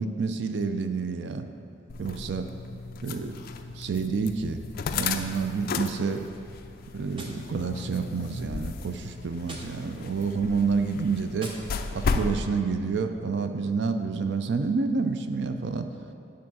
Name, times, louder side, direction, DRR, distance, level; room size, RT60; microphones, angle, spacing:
voice 1, 0.0-1.5 2.0-2.4 3.0-3.4 3.8-4.6 4.9-6.3 6.9-11.5 11.9-15.9, right 4 dB, 60° right, 7 dB, 0.4 m, -28 dB
sound 1, 1.9-12.4, left 4 dB, 50° left, 0.3 m, -35 dB
Gunshot gunfire, 7.1-8.2 9.4-10.3 11.4-12.2, right 1 dB, 25° right, 0.7 m, -46 dB
8.6 x 3.6 x 6.1 m, 2.5 s
head